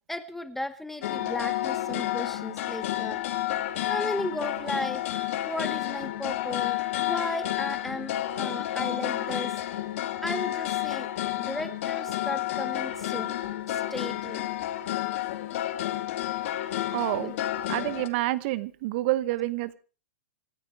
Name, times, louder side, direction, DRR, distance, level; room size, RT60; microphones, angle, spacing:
voice 1, 0.1-3.2 3.6-5.0 5.4-8.1 8.4-9.6 10.2-11.1 11.4-13.3 13.7-14.5 15.7-15.8, left 1 dB, 5° left, 13 dB, 1.1 m, -35 dB
sound 1, 1.0-18.1, left 14 dB, 55° left, 2.3 m, -30 dB
voice 2, 16.9-17.4 17.7-19.8, right 17 dB, 45° right, 17 dB, 0.9 m, -28 dB
26.5 x 9.8 x 4.6 m, 0.37 s
hypercardioid pair, 135°, 8 cm